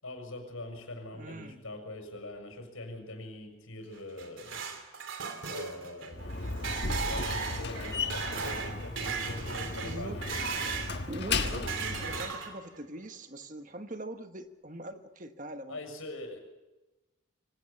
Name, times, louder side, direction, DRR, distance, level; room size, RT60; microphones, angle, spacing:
voice 1, 0.0-4.6 4.9-5.1 5.5-10.4 15.7-16.4, left 2 dB, 90° left, 5 dB, 6.7 m, -43 dB
voice 2, 1.1-1.6 9.6-10.2 11.1-15.8, right 1 dB, 40° right, 8 dB, 1.3 m, -42 dB
sound 1, 4.0-11.0 11.4-12.8, right 5 dB, 70° right, 3.0 m, -37 dB
Slam, 6.1-12.3, left 3 dB, 55° left, 1.5 m, -35 dB
25.0 x 17.5 x 7.2 m, 1.1 s
head